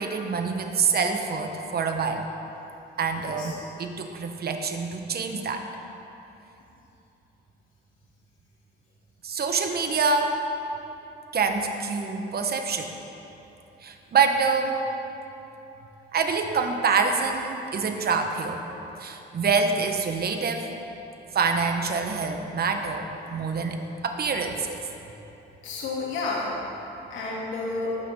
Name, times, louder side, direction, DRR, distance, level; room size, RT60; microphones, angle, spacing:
voice 1, 0.0-2.3 3.0-5.6 9.2-10.4 11.3-12.9 13.8-14.9 16.1-18.6 19.0-20.7 21.3-23.8 24.0-24.8, right 5 dB, 50° right, 5 dB, 1.2 m, -26 dB
voice 2, 3.2-3.6 25.6-26.5 27.1-28.0, left 3 dB, 85° left, -5 dB, 3.0 m, -30 dB
20.0 x 8.7 x 3.9 m, 3.0 s
cardioid pair, 90°, 20 cm